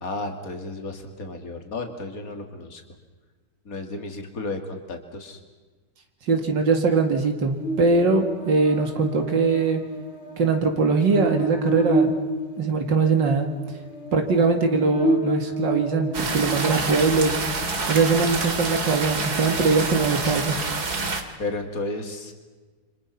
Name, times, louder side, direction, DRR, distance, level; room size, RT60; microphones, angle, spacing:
voice 1, 0.0-2.8 3.6-5.4 21.4-22.3, left 2 dB, 50° left, 5 dB, 3.1 m, -33 dB
voice 2, 6.3-9.8 10.4-12.1 12.6-13.5 14.1-17.4 17.9-20.5, right 4 dB, 85° right, 4 dB, 2.8 m, -21 dB
Buzz, 7.6-17.1, right 1 dB, 35° left, 3.3 m, -30 dB
sound 1, 16.1-21.2, right 3 dB, 60° right, 2.7 m, -27 dB
29.0 x 26.0 x 5.9 m, 1.3 s
omnidirectional pair, 1.9 m